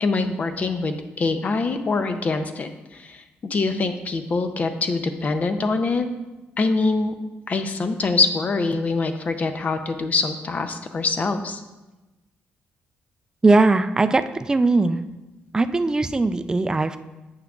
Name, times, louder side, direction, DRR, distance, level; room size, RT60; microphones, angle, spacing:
voice 1, 0.0-6.1 6.6-7.1 7.5-11.6, left 3 dB, 40° left, 8 dB, 0.5 m, -24 dB
voice 2, 13.4-15.0 15.5-17.0, right 3 dB, 20° right, 10 dB, 0.3 m, -19 dB
8.7 x 5.8 x 2.4 m, 1.1 s
cardioid pair, 110°, 4 cm